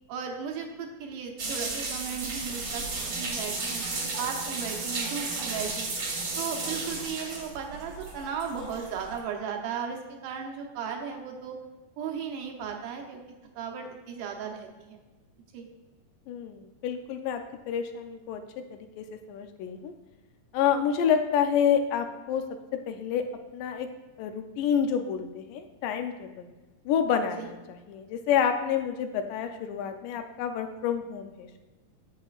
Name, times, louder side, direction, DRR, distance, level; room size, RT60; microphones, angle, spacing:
voice 1, 0.1-5.9 6.4-11.6 12.0-13.2 13.6-15.0 15.5-15.7 27.4-27.5, right 6 dB, 75° right, 2 dB, 2.3 m, -36 dB
sound 1, 1.4-9.2, right 3 dB, 50° right, 1.5 m, -34 dB
voice 2, 16.3-17.4 17.7-18.4 18.7-19.9 20.5-22.4 22.9-23.2 23.5-23.9 24.2-26.5 26.9-27.6 27.9-31.6, left 8 dB, 80° left, 6 dB, 2.1 m, -28 dB
8.9 x 7.7 x 2.4 m, 1.2 s
omnidirectional pair, 3.9 m